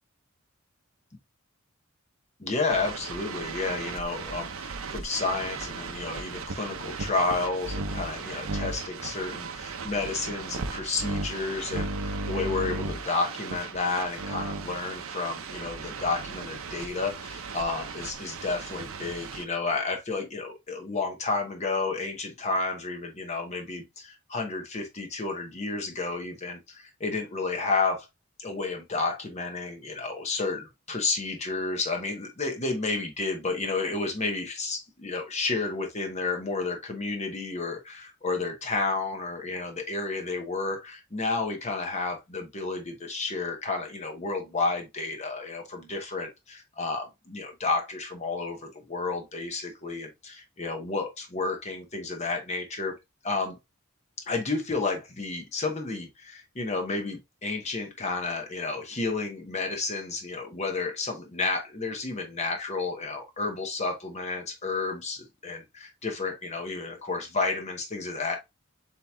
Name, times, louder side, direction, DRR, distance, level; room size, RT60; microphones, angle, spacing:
voice 1, 2.4-28.1 28.4-53.0 53.2-53.6 54.3-68.4, left 3 dB, 30° left, 0.9 m, -31 dB
sound 1, 2.7-19.5, right 3 dB, 75° right, 0.6 m, -36 dB
7.6 x 2.9 x 2.2 m
head